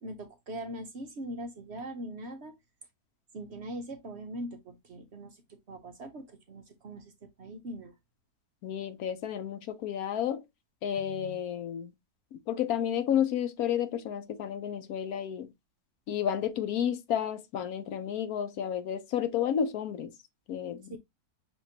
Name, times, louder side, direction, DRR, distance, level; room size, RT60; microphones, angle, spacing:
voice 1, 0.0-2.5 3.3-7.9 20.9-21.0, right 1 dB, 55° right, 0.9 m, -41 dB
voice 2, 8.6-10.4 10.8-11.9 12.3-15.5 16.1-20.1 20.5-21.0, left 9 dB, 75° left, 1.1 m, -31 dB
6.1 x 2.9 x 2.7 m
omnidirectional pair, 1.7 m